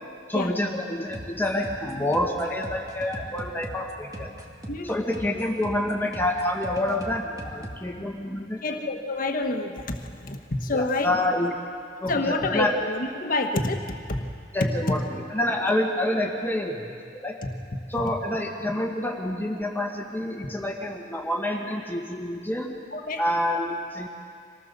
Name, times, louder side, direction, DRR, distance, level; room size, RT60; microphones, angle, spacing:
voice 1, 0.3-4.3 4.8-8.6 10.7-11.5 12.0-12.8 14.5-15.0 15.3-17.3 17.9-22.8 23.2-24.1, left 1 dB, 10° left, 0 dB, 1.8 m, -27 dB
sound 1, 1.1-7.8, right 1 dB, 20° right, 1.9 m, -40 dB
voice 2, 8.6-11.1 12.1-14.3 14.6-15.0 17.4-17.5 22.9-23.2, left 2 dB, 50° left, 4 dB, 1.5 m, -27 dB
25.0 x 18.5 x 6.8 m, 2.3 s
head